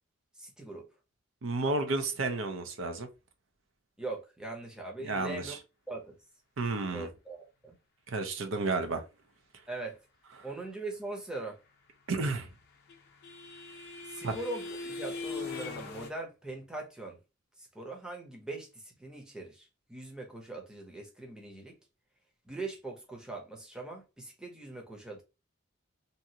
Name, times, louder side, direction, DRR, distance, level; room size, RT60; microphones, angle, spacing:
voice 1, 0.4-0.9 4.0-5.6 5.9-6.1 6.9-7.8 9.7-10.0 10.4-11.6 14.1-17.2 17.7-21.8 22.5-25.2, right 2 dB, 5° right, 0.7 m, -41 dB
voice 2, 1.4-3.1 5.0-5.6 6.6-7.1 8.1-9.0 12.1-12.5 14.2-14.4, right 3 dB, 70° right, 0.6 m, -31 dB
sound 1, 12.4-16.1, left 3 dB, 50° left, 0.6 m, -41 dB
2.8 x 2.4 x 2.7 m
head